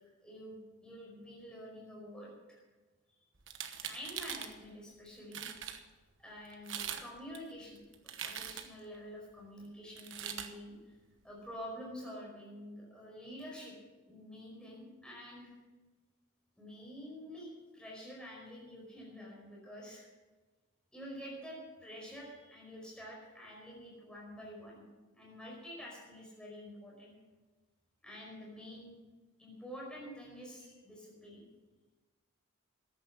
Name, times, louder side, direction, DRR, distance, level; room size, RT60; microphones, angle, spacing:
voice 1, 0.2-2.6 3.8-5.5 6.2-11.0 11.2-13.7 14.0-15.5 16.6-20.1 20.9-24.8 25.1-27.1 28.0-28.9 29.4-31.4, equal, 5° left, -3 dB, 5.1 m, -48 dB
sound 1, 3.4-4.5 5.1-5.2 5.3-5.8 6.5-7.1 7.3-8.8 10.0-10.5, right 9 dB, 70° right, 1.1 m, -41 dB
14.5 x 10.5 x 6.3 m, 1.3 s
head